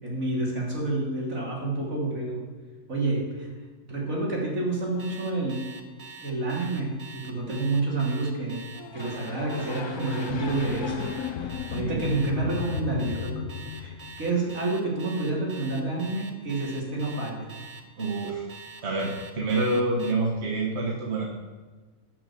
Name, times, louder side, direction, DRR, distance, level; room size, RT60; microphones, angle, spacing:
voice 1, 0.0-2.4 2.9-3.5 3.9-5.6 6.2-8.6 8.9-11.1 11.4-13.5 13.7-17.5, right 2 dB, 75° right, -4 dB, 3.5 m, -29 dB
Alarm, 5.0-20.1, right 4 dB, 30° right, 0.9 m, -44 dB
sound 1, 8.7-12.9, left 3 dB, 35° left, 0.4 m, -40 dB
sound 2, 10.3-14.6, left 9 dB, 85° left, 1.1 m, -34 dB
voice 2, 18.0-18.5 18.8-21.3, right 2 dB, 55° right, -1 dB, 1.5 m, -27 dB
12.0 x 6.1 x 7.0 m, 1.3 s
omnidirectional pair, 1.4 m